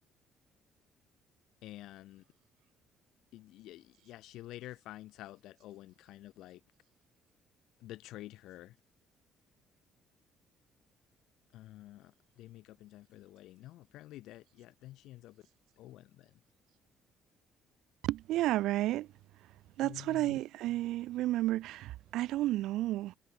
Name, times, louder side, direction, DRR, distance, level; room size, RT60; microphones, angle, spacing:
voice 1, 1.6-2.2 3.3-6.6 7.8-8.7 11.5-12.1 12.4-15.4 15.8-16.3 19.8-20.4, left 15 dB, 75° left, 2.7 m, -49 dB
voice 2, 18.0-19.1 19.8-23.2, right 15 dB, 70° right, 1.5 m, -32 dB
cardioid pair, 175°, 0 cm